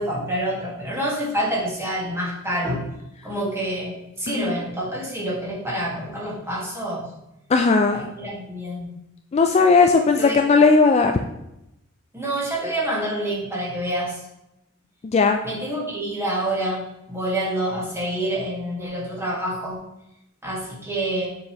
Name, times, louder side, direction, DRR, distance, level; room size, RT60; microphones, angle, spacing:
voice 1, 0.0-2.9 3.2-7.1 7.9-8.9 10.2-10.4 12.1-14.2 15.4-16.8 17.1-19.8 20.4-21.3, right 1 dB, 10° right, -6 dB, 1.8 m, -27 dB
voice 2, 4.3-4.6 7.5-8.0 9.3-11.1 15.1-15.4, left 4 dB, 30° left, 5 dB, 0.3 m, -17 dB
6.9 x 4.8 x 3.0 m, 0.87 s
head